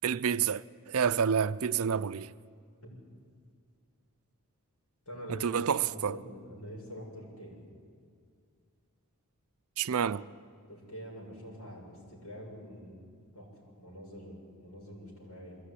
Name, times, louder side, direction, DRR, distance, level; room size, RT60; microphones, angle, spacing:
voice 1, 0.0-2.3 5.3-6.2 9.8-10.2, right 7 dB, 70° right, 0.5 m, -29 dB
voice 2, 5.1-7.6 10.7-13.5 13.8-15.6, equal, 75° left, 7.2 m, -45 dB
22.0 x 16.0 x 9.9 m
head